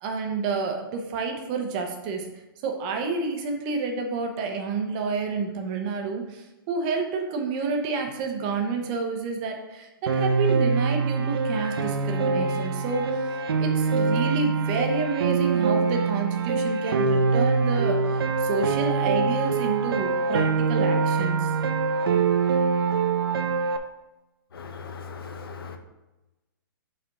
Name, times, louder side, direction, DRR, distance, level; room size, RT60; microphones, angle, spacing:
voice 1, 0.0-2.3 2.6-13.3 13.6-21.5, right 4 dB, 20° right, 3 dB, 0.6 m, -29 dB
Piano, 10.1-23.8, right 4 dB, 85° right, 0.7 m, -24 dB
voice 2, 24.5-25.8, left 5 dB, 80° left, 6 dB, 1.0 m, -39 dB
5.3 x 4.1 x 5.9 m, 1.0 s
hypercardioid pair, 180°, 12 cm